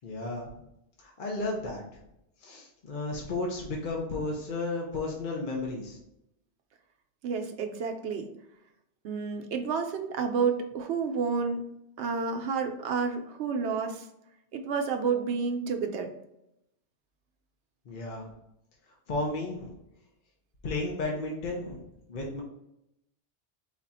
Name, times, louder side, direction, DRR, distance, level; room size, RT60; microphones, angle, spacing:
voice 1, 0.0-0.5 1.0-1.8 2.4-6.0 17.9-18.3 19.1-19.7 20.6-22.4, left 2 dB, 50° left, -1 dB, 0.9 m, -33 dB
voice 2, 7.2-8.3 9.0-11.6 12.0-14.0 14.5-16.1, right 5 dB, 75° right, 5 dB, 0.9 m, -30 dB
4.2 x 2.4 x 4.0 m, 0.82 s
omnidirectional pair, 1.2 m